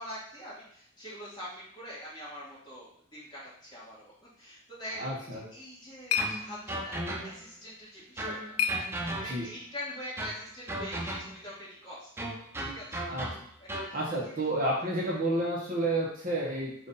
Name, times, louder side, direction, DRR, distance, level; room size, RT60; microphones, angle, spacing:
voice 1, 0.0-5.1 5.5-7.0 7.2-12.1 12.6-13.1 13.8-15.1, equal, 20° left, -9 dB, 1.6 m, -44 dB
voice 2, 4.9-5.4 9.1-9.5 13.1-13.3 13.9-16.9, right 1 dB, 40° right, -3 dB, 0.8 m, -31 dB
sound 1, 5.3-9.6, left 6 dB, 90° left, 0.3 m, -36 dB
sound 2, 6.2-7.6 8.2-9.6 10.2-11.5 12.2-14.0, right 1 dB, 10° right, 0.3 m, -37 dB
3.8 x 2.5 x 4.0 m, 0.63 s
head